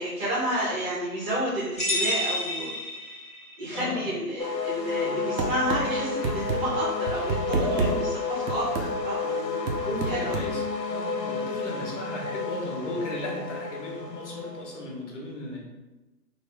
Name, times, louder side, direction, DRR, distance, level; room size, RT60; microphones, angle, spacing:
voice 1, 0.0-2.7 3.6-9.2 10.0-10.4, right 1 dB, 40° right, -7 dB, 1.1 m, -30 dB
sound 1, 1.8-3.6, left 1 dB, ahead, 1.0 m, -29 dB
voice 2, 3.7-4.1 5.0-5.2 7.5-8.0 9.2-15.7, left 1 dB, 45° left, -1 dB, 1.0 m, -35 dB
sound 2, 4.4-14.8, left 4 dB, 85° left, 0.7 m, -31 dB
sound 3, 5.4-5.8 6.2-6.6 7.1-7.9 8.5-8.9 9.7-10.5, right 4 dB, 80° right, 0.9 m, -27 dB
3.4 x 2.4 x 3.5 m, 1.1 s
hypercardioid pair, 150°, 49 cm